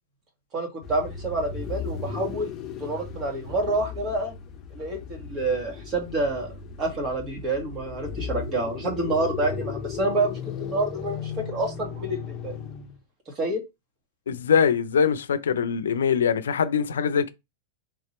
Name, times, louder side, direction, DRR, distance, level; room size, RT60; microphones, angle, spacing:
voice 1, 0.5-2.5 2.8-4.3 4.7-6.5 6.8-12.5 13.4-13.6, right 2 dB, 30° right, 1.8 m, -28 dB
sound 1, 0.8-13.0, left 6 dB, 30° left, 0.9 m, -36 dB
voice 2, 14.3-17.3, left 7 dB, 90° left, 0.5 m, -23 dB
3.6 x 3.0 x 4.2 m
hypercardioid pair, 130°, 0 cm